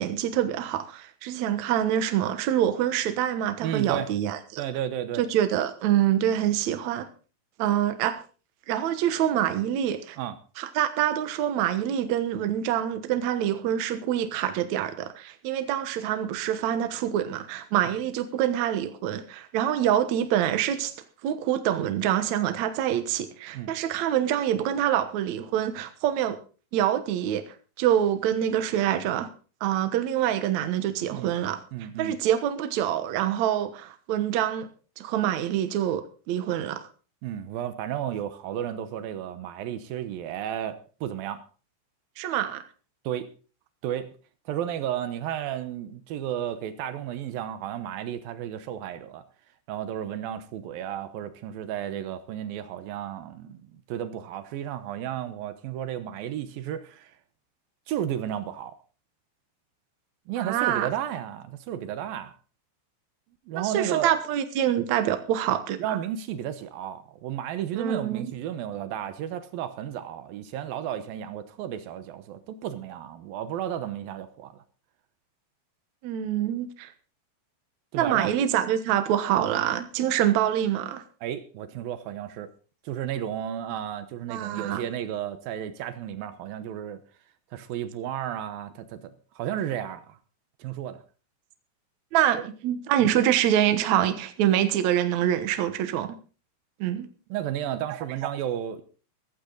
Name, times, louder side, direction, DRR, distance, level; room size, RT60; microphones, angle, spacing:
voice 1, 0.0-4.6 5.2-7.1 7.6-8.2 8.7-10.2 10.6-20.9 21.2-26.4 26.7-29.3 29.6-31.6 32.0-34.7 35.0-36.9 42.2-42.6 60.4-60.9 63.5-66.0 67.7-68.3 76.0-76.9 78.0-81.0 84.3-84.8 92.1-96.2 96.8-97.1, right 11 dB, 90° right, 1.6 m, -26 dB
voice 2, 3.6-4.1 4.6-5.2 10.2-10.4 23.5-23.7 31.1-31.3 31.7-32.2 37.2-41.4 43.0-43.3 43.8-44.1 44.5-49.2 49.7-57.2 57.9-58.8 60.3-62.3 63.5-64.2 65.8-74.6 77.9-78.3 81.2-82.5 82.8-87.0 87.5-90.2 90.6-91.0 92.3-92.4 97.3-98.8, right 10 dB, 70° right, 2.3 m, -33 dB
15.0 x 14.5 x 3.9 m
omnidirectional pair, 5.2 m